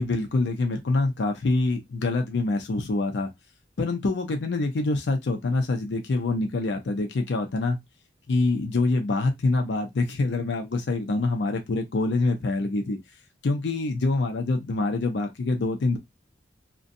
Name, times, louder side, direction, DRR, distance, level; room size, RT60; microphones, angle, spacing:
voice 1, 0.0-3.3 3.8-7.8 8.3-13.0 13.4-16.0, left 2 dB, 75° left, 0.5 m, -25 dB
2.6 x 2.1 x 2.5 m
head